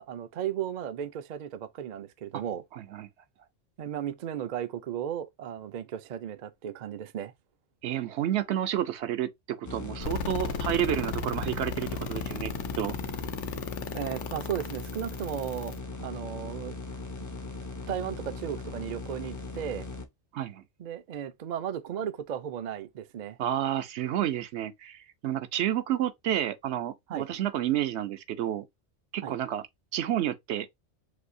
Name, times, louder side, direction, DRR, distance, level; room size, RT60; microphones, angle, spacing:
voice 1, 0.0-2.6 3.8-7.3 13.9-16.8 17.9-19.9 20.8-23.4 27.1-27.3 29.2-29.4, right 9 dB, 60° right, 0.5 m, -35 dB
voice 2, 2.7-3.1 7.8-12.5 12.8-12.9 20.3-20.6 23.4-28.7 29.1-29.6 29.9-30.7, right 11 dB, 75° right, 0.8 m, -30 dB
sound 1, 9.6-20.1, left 3 dB, 25° left, 0.4 m, -39 dB
sound 2, 10.0-15.8, left 6 dB, 85° left, 1.0 m, -35 dB
6.1 x 2.6 x 2.5 m
omnidirectional pair, 1.2 m